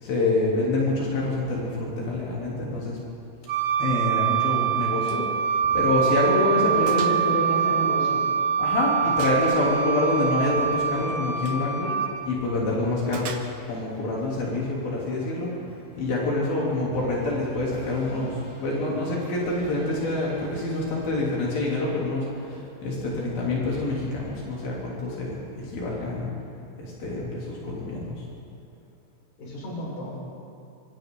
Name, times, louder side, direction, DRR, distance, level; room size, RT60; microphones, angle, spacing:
voice 1, 0.0-3.0 3.8-5.2 5.7-7.0 8.6-11.9 12.3-13.3 13.7-15.5 16.0-18.3 18.6-26.3 26.8-28.1, left 2 dB, 90° left, -5 dB, 5.2 m, -26 dB
Wind instrument woodwind instrument, 3.5-12.1, right 7 dB, 75° right, 4.0 m, -24 dB
Gunshot gunfire, 5.1-5.3 5.6-5.7 6.2-6.3 6.9-7.2 7.6-8.5 9.2-9.7 11.3-11.7 13.1-13.9, right 5 dB, 55° right, 1.9 m, -39 dB
voice 2, 6.6-8.2 29.4-30.3, equal, 55° left, -4 dB, 6.4 m, -30 dB
sound 1, 13.7-21.5, right 1 dB, 20° left, 7.1 m, -47 dB
26.5 x 25.5 x 3.9 m, 2.6 s
omnidirectional pair, 4.1 m